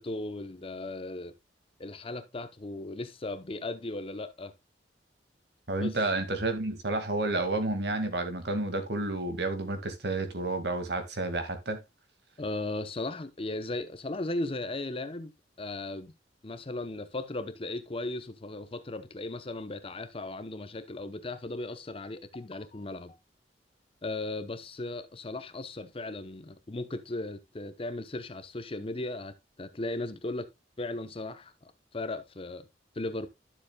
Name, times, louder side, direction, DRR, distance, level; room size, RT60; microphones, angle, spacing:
voice 1, 0.0-1.3 1.8-4.5 5.8-6.0 12.4-15.3 15.6-16.1 16.4-23.2 24.0-30.5 30.8-31.5 31.9-32.6 33.0-33.3, left 2 dB, 30° left, 0.8 m, -36 dB
voice 2, 5.7-11.8, right 2 dB, 65° right, 2.0 m, -30 dB
12.0 x 7.3 x 2.2 m
head